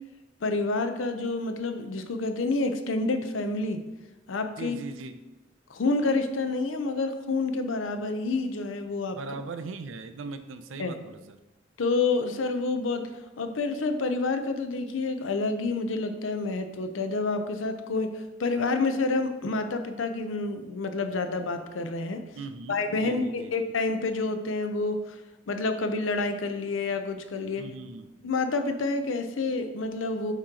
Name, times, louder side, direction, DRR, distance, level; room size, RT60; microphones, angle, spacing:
voice 1, 0.4-3.8 4.3-4.8 5.7-9.2 10.8-10.9 11.8-13.1 13.4-22.2 22.7-25.2 25.5-27.6 28.2-30.3, left 3 dB, 85° left, 7 dB, 0.6 m, -28 dB
voice 2, 4.6-5.1 9.2-11.4 22.3-23.5 27.6-28.1, right 3 dB, 90° right, 10 dB, 0.5 m, -39 dB
8.9 x 3.0 x 3.7 m, 1.1 s
head